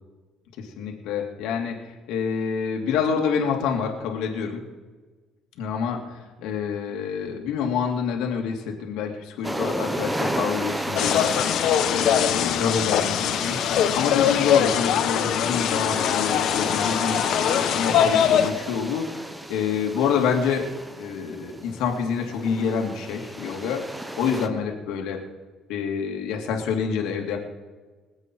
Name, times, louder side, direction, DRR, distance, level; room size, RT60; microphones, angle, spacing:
voice 1, 0.6-4.6 5.6-11.4 11.9-19.1 19.5-23.8 24.2-25.2 25.7-27.4, left 6 dB, 90° left, 1 dB, 2.6 m, -27 dB
sound 1, 9.4-24.5, right 1 dB, 10° right, 1.1 m, -34 dB
sound 2, 11.0-18.5, left 9 dB, 70° left, 1.4 m, -22 dB
24.5 x 8.2 x 4.7 m, 1.3 s
cardioid pair, 110°, 0 cm